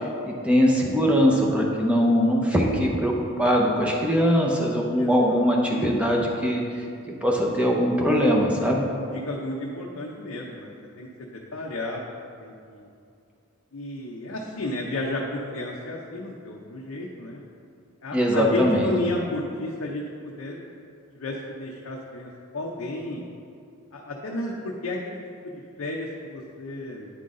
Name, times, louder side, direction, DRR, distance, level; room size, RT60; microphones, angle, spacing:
voice 1, 0.2-6.6 7.2-8.8 18.1-18.9, equal, 5° right, -2 dB, 0.7 m, -21 dB
voice 2, 4.9-5.5 9.1-12.0 12.4-12.9 13.7-17.4 18.0-20.6 21.1-23.2 23.9-25.2 25.4-27.1, left 2 dB, 70° left, -2 dB, 0.6 m, -32 dB
9.6 x 3.9 x 3.7 m, 2.4 s
head